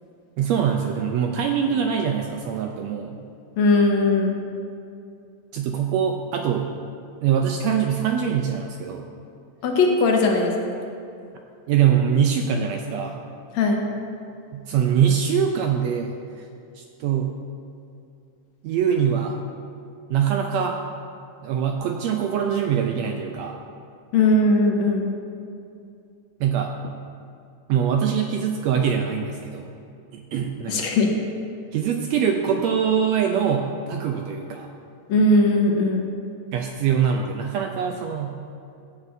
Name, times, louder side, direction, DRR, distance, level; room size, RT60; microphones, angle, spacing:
voice 1, 0.4-3.2 5.5-6.7 7.2-9.1 11.7-13.2 14.5-16.5 16.8-17.3 18.6-19.4 20.1-20.8 21.4-23.6 26.4-27.0 27.7-29.7 30.1-30.9 31.7-34.7 36.5-38.4, right 8 dB, 80° right, 3 dB, 1.6 m, -23 dB
voice 2, 3.6-4.4 9.6-10.7 13.5-13.8 24.1-25.1 30.7-31.1 35.1-36.1, left 2 dB, 70° left, 1 dB, 2.1 m, -19 dB
16.0 x 8.1 x 2.6 m, 2.5 s
omnidirectional pair, 3.4 m